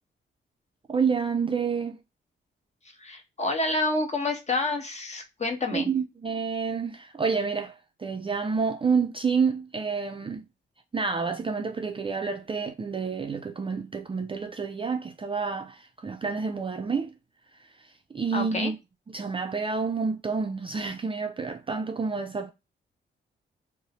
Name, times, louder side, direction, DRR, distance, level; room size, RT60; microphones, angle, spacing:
voice 1, 0.9-2.0 5.7-10.4 10.9-17.1 17.8-18.8 19.1-22.5, right 5 dB, 25° right, 0.4 m, -29 dB
voice 2, 3.0-5.9 18.3-18.7, left 2 dB, 35° left, 0.9 m, -28 dB
2.6 x 2.0 x 2.8 m
cardioid pair, 70°, 20 cm